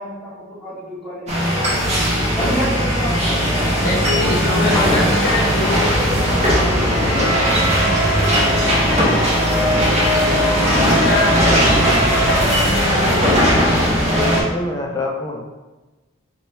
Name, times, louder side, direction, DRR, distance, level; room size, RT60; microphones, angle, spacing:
voice 1, 0.0-1.9 2.4-5.3 5.7-9.2 9.7-9.9 10.2-10.7, equal, ahead, -10 dB, 1.0 m, -31 dB
sound 1, 1.3-14.4, equal, 35° right, 0.7 m, -18 dB
sound 2, 1.8-14.4, equal, 90° right, 0.6 m, -25 dB
voice 2, 3.8-5.9 7.2-7.8 8.3-9.1 10.9-11.7 12.7-13.9, left 1 dB, 50° left, -5 dB, 0.7 m, -25 dB
voice 3, 13.9-15.4, left 2 dB, 20° left, 0 dB, 0.3 m, -26 dB
4.1 x 2.2 x 3.1 m, 1.2 s
head